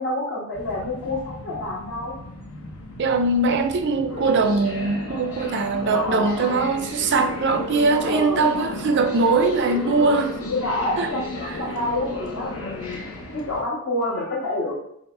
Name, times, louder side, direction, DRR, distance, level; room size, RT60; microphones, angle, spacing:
voice 1, 0.0-2.1 5.9-6.5 8.1-8.5 9.4-10.1 10.5-13.0 13.3-14.7, left 2 dB, 55° left, 1.6 m, -28 dB
sound 1, 0.5-13.6, left 2 dB, 70° left, 0.8 m, -34 dB
voice 2, 3.0-10.5 11.0-11.1, right 3 dB, 50° right, 0.5 m, -21 dB
5.3 x 2.0 x 4.4 m
head